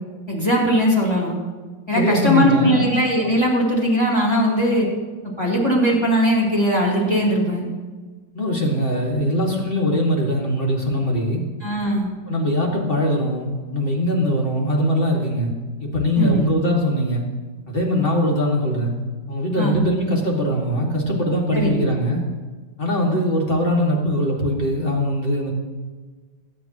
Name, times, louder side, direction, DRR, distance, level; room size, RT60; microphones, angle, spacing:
voice 1, 0.3-1.3 1.9-4.9 5.4-7.6 11.6-12.1 16.1-16.5 19.6-19.8 21.5-21.8, equal, 15° left, -4 dB, 2.8 m, -19 dB
voice 2, 1.9-2.9 8.3-11.4 12.3-15.5 15.8-17.2 17.7-18.9 19.3-22.2 22.8-25.5, equal, 30° left, -1 dB, 2.1 m, -21 dB
20.0 x 9.2 x 3.0 m, 1.4 s
omnidirectional pair, 2.0 m